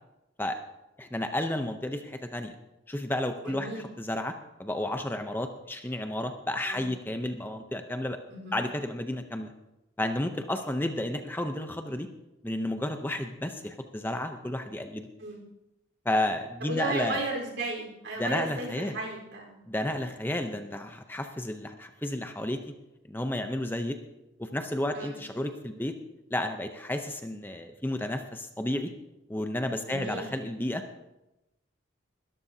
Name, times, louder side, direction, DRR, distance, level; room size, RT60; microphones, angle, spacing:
voice 1, 1.0-2.5 2.9-4.3 4.6-8.2 8.5-9.5 10.0-12.1 12.4-15.1 16.1-17.2 18.2-19.0 19.7-22.6 23.1-24.0 24.4-26.0 26.3-28.9 29.3-30.8, left 1 dB, 10° left, 6 dB, 0.6 m, -32 dB
voice 2, 3.4-3.8 6.6-6.9 8.3-8.6 15.2-15.4 16.6-19.6 24.9-25.2 29.8-30.3, right 2 dB, 65° right, 0 dB, 4.0 m, -35 dB
21.5 x 13.0 x 2.8 m, 0.95 s
head